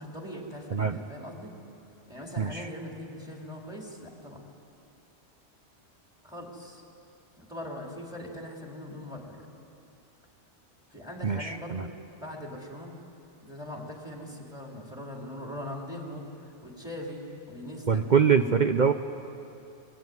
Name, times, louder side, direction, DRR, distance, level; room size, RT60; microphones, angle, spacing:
voice 1, 0.0-1.5 2.1-4.4 6.2-6.8 7.4-9.5 10.9-11.9 12.2-12.9 13.4-17.2 17.5-18.0, left 1 dB, 5° right, -1 dB, 3.7 m, -41 dB
voice 2, 2.4-2.7 11.2-11.9 17.9-18.9, right 6 dB, 45° right, 7 dB, 0.7 m, -24 dB
23.0 x 18.5 x 9.5 m, 2.7 s
omnidirectional pair, 1.2 m